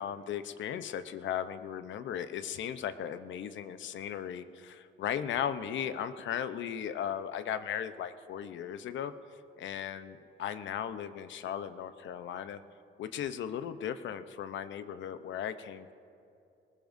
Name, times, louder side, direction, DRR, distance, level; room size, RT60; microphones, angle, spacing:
voice 1, 0.0-9.1 9.6-12.6 13.0-15.9, left 9 dB, 70° left, 11 dB, 0.8 m, -37 dB
20.5 x 20.0 x 2.7 m, 2.7 s
cardioid pair, 90°, 20 cm